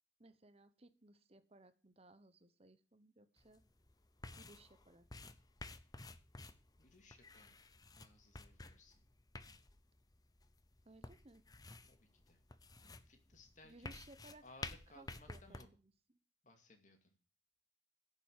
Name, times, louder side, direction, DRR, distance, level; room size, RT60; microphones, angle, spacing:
voice 1, 0.2-3.6 4.4-5.1 10.8-11.4 13.6-14.4 14.9-15.9, right 2 dB, 35° right, 12 dB, 1.0 m, -62 dB
sound 1, 3.4-15.6, left 2 dB, 20° left, 0.7 m, -53 dB
voice 2, 6.8-7.5 7.9-9.0 11.9-12.4 12.8-14.0 14.4-15.7 16.4-17.1, left 2 dB, 45° left, 5 dB, 2.2 m, -63 dB
10.0 x 7.1 x 9.4 m, 0.36 s
head